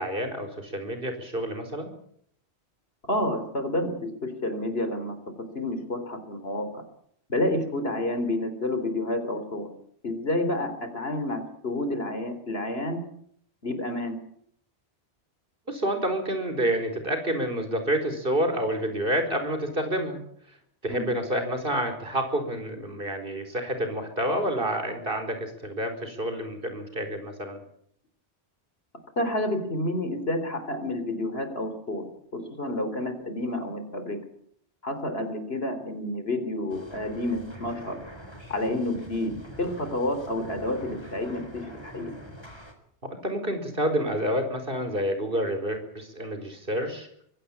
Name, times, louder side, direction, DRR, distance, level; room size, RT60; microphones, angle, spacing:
voice 1, 0.0-1.9 15.7-20.2 20.8-27.6 43.0-47.1, right 1 dB, 55° right, 7 dB, 4.8 m, -28 dB
voice 2, 3.1-5.2 5.6-6.8 7.3-9.7 10.0-13.0 13.6-14.2 20.9-21.1 29.2-32.1 32.3-34.2 34.8-38.0 38.5-42.1, left 1 dB, 65° left, 9 dB, 3.9 m, -29 dB
sound 1, 36.7-42.7, equal, 25° left, 4.2 m, -44 dB
24.5 x 16.5 x 8.6 m, 0.68 s
omnidirectional pair, 1.1 m